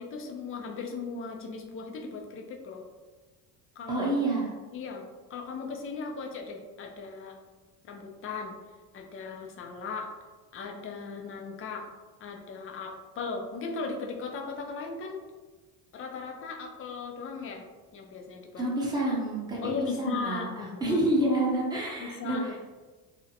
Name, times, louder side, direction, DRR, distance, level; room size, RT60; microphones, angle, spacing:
voice 1, 0.0-2.8 3.8-4.1 4.7-5.0 5.3-7.4 7.8-8.6 8.9-10.1 10.5-11.9 12.2-15.2 15.9-17.6 17.9-18.6 19.6-21.2 22.0-22.6, left 4 dB, 35° left, 2 dB, 0.4 m, -37 dB
voice 2, 3.9-4.5 18.6-20.5 20.8-22.6, right 1 dB, 10° right, -5 dB, 0.6 m, -28 dB
2.6 x 2.0 x 2.7 m, 1.3 s
cardioid pair, 125°, 38 cm